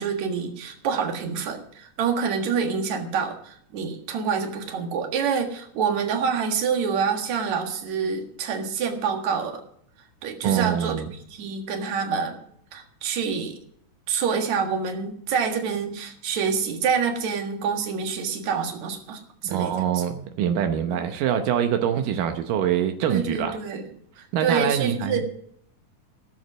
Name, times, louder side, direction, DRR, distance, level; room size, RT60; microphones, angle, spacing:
voice 1, 0.0-9.6 10.2-11.0 11.3-12.4 12.7-13.6 14.1-20.0 20.9-21.0 23.1-23.9 24.2-25.3, right 6 dB, 65° right, 4 dB, 2.9 m, -27 dB
voice 2, 10.4-11.1 19.4-23.5 24.3-25.2, right 9 dB, 85° right, 6 dB, 2.5 m, -24 dB
16.5 x 7.5 x 6.1 m, 0.65 s
omnidirectional pair, 3.7 m